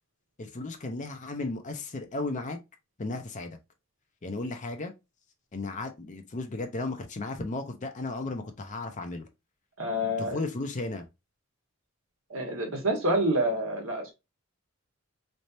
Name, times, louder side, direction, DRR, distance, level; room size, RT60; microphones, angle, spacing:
voice 1, 0.4-2.6 3.0-3.6 4.2-4.9 5.5-9.2 10.0-11.0, left 2 dB, 35° left, 0.6 m, -35 dB
voice 2, 9.8-10.4 12.3-14.1, right 1 dB, 75° right, 1.4 m, -27 dB
4.1 x 3.3 x 2.7 m
head